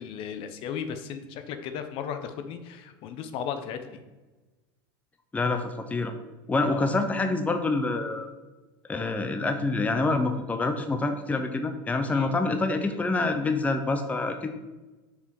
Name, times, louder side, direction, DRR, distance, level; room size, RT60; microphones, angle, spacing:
voice 1, 0.0-3.8 6.7-6.9 12.1-12.4, left 8 dB, 50° left, 9 dB, 0.7 m, -35 dB
voice 2, 5.3-6.1 6.5-8.3 8.9-14.5, left 3 dB, 15° left, 7 dB, 0.6 m, -26 dB
6.8 x 4.7 x 4.6 m, 1.2 s
supercardioid pair, 115°, 12 cm